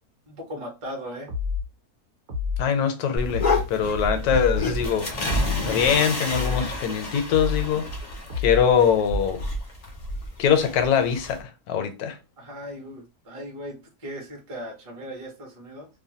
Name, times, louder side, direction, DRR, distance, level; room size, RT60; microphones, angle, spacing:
voice 1, 0.3-1.3 8.5-8.8 12.4-15.9, equal, 35° right, 0.5 m, -38 dB
sound 1, 1.3-1.7 2.3-2.7 3.3-3.7 4.3-4.7 5.3-5.7 6.3-6.7 7.3-7.7 8.3-8.7, left 5 dB, 55° right, 1.1 m, -28 dB
voice 2, 2.6-5.1 5.7-7.8 8.4-9.4 10.4-12.2, left 7 dB, 80° left, 1.1 m, -22 dB
sound 2, 3.2-11.4, left 1 dB, 60° left, 0.4 m, -30 dB
2.9 x 2.2 x 2.7 m
omnidirectional pair, 1.6 m